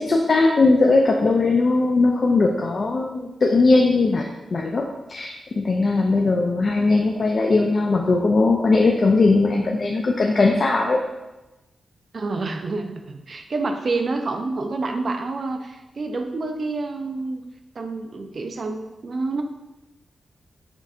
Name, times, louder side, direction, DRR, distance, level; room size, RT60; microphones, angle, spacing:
voice 1, 0.0-4.8 5.1-11.0, left 3 dB, 45° left, 1 dB, 0.3 m, -19 dB
voice 2, 12.1-17.4 17.8-19.4, right 3 dB, 50° right, 5 dB, 0.4 m, -28 dB
5.9 x 2.7 x 2.4 m, 1.0 s
wide cardioid pair, 130°, 0 cm